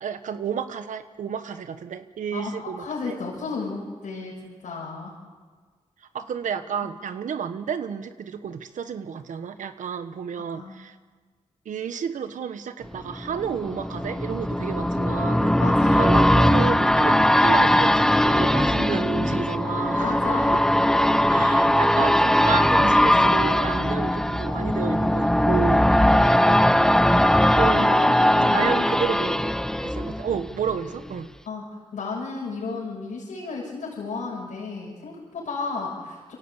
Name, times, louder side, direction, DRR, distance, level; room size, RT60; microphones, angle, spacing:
voice 1, 0.0-3.2 6.1-10.9 11.6-15.5 16.0-20.6 21.0-25.8 27.5-28.0 28.5-31.3, right 7 dB, 85° right, 10 dB, 1.2 m, -31 dB
voice 2, 2.3-5.1 10.3-10.8 15.6-16.0 20.0-20.5 27.6-28.9 31.4-31.6 31.9-36.3, left 4 dB, 90° left, -3 dB, 6.3 m, -33 dB
sound 1, 12.9-30.7 31.1-31.2, left 1 dB, 5° left, 0.6 m, -20 dB
24.5 x 17.0 x 8.3 m, 1.5 s
cardioid pair, 65°, 13 cm